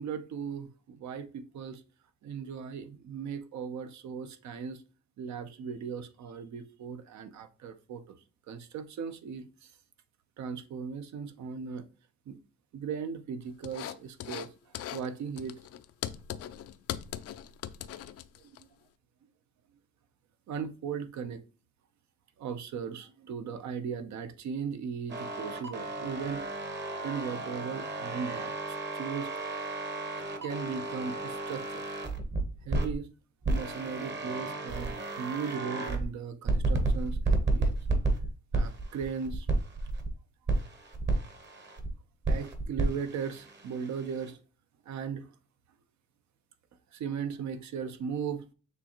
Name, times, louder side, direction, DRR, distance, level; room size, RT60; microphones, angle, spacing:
voice 1, 0.0-1.8 2.2-4.8 5.2-8.2 8.5-9.7 10.4-11.9 12.3-12.4 12.7-14.5 14.9-15.6 20.5-21.4 22.4-26.5 27.0-28.5 28.9-29.3 30.4-31.9 32.6-33.1 33.5-37.8 38.5-39.5 42.3-44.4 44.9-45.3 46.9-48.4, right 6 dB, 65° right, 0.7 m, -37 dB
sound 1, 13.6-14.5 14.7-15.1 15.4-18.6, left 10 dB, 55° left, 0.4 m, -39 dB
sound 2, 25.1-32.9 33.4-36.1 36.5-40.1 40.5-41.9 42.2-44.3, right 2 dB, 35° right, 1.1 m, -32 dB
6.5 x 2.5 x 3.0 m
cardioid pair, 90°, 30 cm